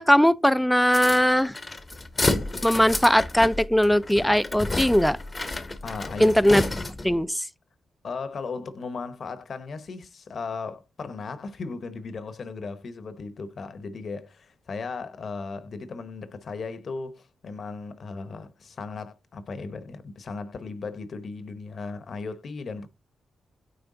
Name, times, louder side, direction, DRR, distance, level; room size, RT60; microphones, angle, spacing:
voice 1, 0.0-1.5 2.6-5.2 6.2-6.6 7.0-7.4, equal, 5° left, 0.4 m, -20 dB
sound 1, 0.8-7.2, left 2 dB, 20° left, 0.8 m, -30 dB
voice 2, 5.8-6.6 8.0-22.9, left 4 dB, 50° left, 1.0 m, -36 dB
9.4 x 3.4 x 3.9 m
cardioid pair, 105°, 0 cm